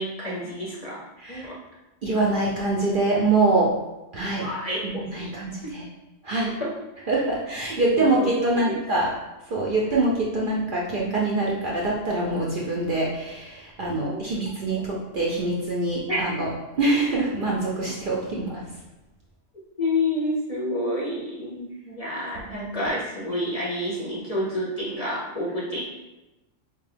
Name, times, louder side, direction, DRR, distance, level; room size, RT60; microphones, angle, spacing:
voice 1, 0.0-1.0 1.3-1.5 4.4-5.3 6.6-6.7 8.0-8.3 8.6-8.8 14.0-14.3 16.1-16.2 19.8-25.8, left 1 dB, 40° left, -6 dB, 0.5 m, -29 dB
voice 2, 1.2-1.5 2.0-3.7 4.1-4.5 4.8-5.9 6.2-6.5 7.1-9.1 9.5-16.5 16.8-18.6 22.5-22.7, right 2 dB, 55° right, -4 dB, 0.6 m, -24 dB
4.5 x 2.2 x 3.3 m, 1.0 s
omnidirectional pair, 1.3 m